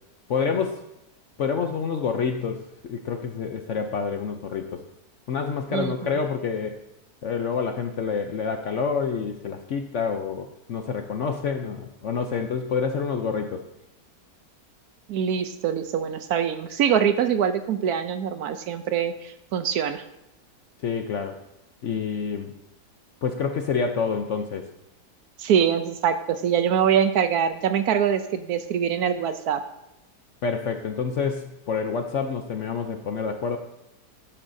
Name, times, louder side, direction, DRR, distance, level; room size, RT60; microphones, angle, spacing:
voice 1, 0.3-0.8 1.4-4.8 5.3-6.8 7.2-13.6 20.8-21.4 21.8-22.5 23.2-24.7 30.4-33.6, left 5 dB, 60° left, 5 dB, 0.8 m, -28 dB
voice 2, 15.1-20.0 25.4-29.6, right 8 dB, 70° right, 9 dB, 1.1 m, -24 dB
11.5 x 11.0 x 2.7 m, 0.85 s
omnidirectional pair, 1.8 m